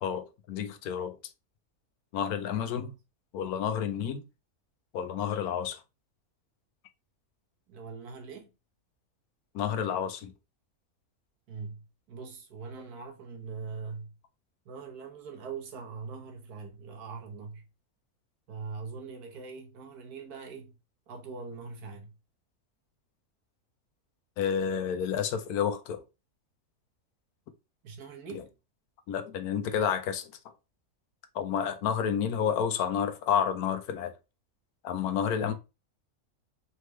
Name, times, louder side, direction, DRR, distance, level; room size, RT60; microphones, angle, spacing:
voice 1, 0.0-1.2 2.1-2.9 3.3-4.2 4.9-5.8 9.5-10.3 24.4-26.0 28.3-28.4 29.1-30.3 31.3-34.1 34.8-35.5, left 8 dB, 80° left, 1.2 m, -30 dB
voice 2, 7.7-8.5 11.5-14.2 14.6-17.7 18.5-20.8 21.1-22.2 27.8-28.5 35.4-35.5, right 5 dB, 90° right, 1.5 m, -42 dB
4.2 x 3.3 x 3.1 m
omnidirectional pair, 1.6 m